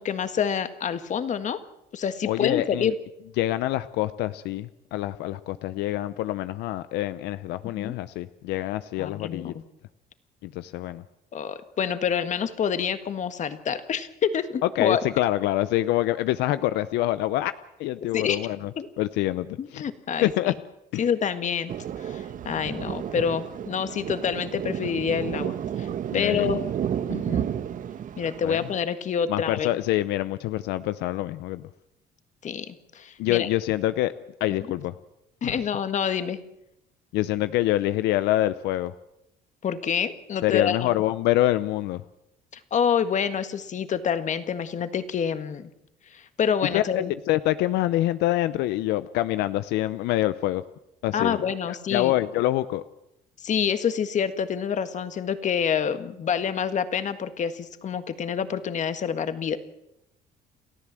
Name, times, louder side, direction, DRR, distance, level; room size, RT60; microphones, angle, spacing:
voice 1, 0.0-1.6 1.9-2.9 7.6-7.9 9.0-9.6 11.3-15.0 18.1-18.4 18.8-18.9 19.6-20.5 21.0-21.7 22.0-25.9 26.1-26.6 27.1-27.5 28.2-29.7 32.4-33.5 34.5-34.6 35.4-36.4 39.6-41.0 42.7-45.7 46.1-47.1 51.1-52.1 53.4-59.6, left 7 dB, 45° left, 11 dB, 1.7 m, -27 dB
voice 2, 2.3-2.9 3.4-9.5 10.4-11.0 14.8-18.7 19.0-19.8 20.2-20.5 20.9-21.0 26.1-26.5 28.4-28.6 29.3-31.6 33.2-34.1 34.4-34.9 35.4-35.6 37.1-38.9 40.4-42.0 46.7-50.6 51.0-52.8, left 15 dB, 90° left, 14 dB, 0.7 m, -26 dB
Thunder, 21.7-28.8, right 9 dB, 50° right, 1.1 m, -31 dB
29.5 x 13.5 x 7.6 m, 0.85 s
cardioid pair, 110°, 17 cm